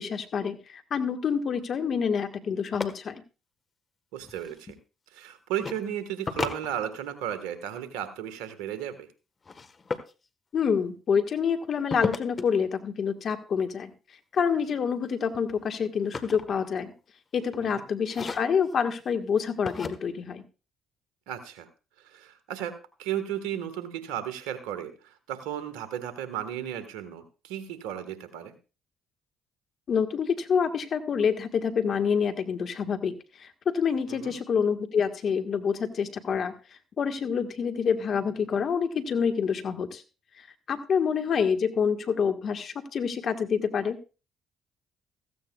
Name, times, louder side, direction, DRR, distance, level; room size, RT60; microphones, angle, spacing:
voice 1, 0.0-3.2 10.5-13.9 14.3-16.9 17.3-20.4 29.9-36.5 37.0-40.0 40.4-44.0, left 6 dB, 55° left, 7 dB, 1.5 m, -27 dB
sound 1, 2.7-2.9 4.2-4.8 5.6-5.8 6.2-7.3 9.4-10.1 11.9-12.5 14.4-14.7 15.1-17.0 17.4-17.7 18.1-18.7 19.6-19.9, left 4 dB, 40° left, 1.3 m, -34 dB
voice 2, 4.1-4.8 5.1-9.1 17.6-17.8 21.3-21.7 22.0-28.5 34.1-34.3, right 10 dB, 80° right, 11 dB, 1.4 m, -35 dB
15.5 x 15.0 x 2.3 m, 0.33 s
hypercardioid pair, 50°, 0 cm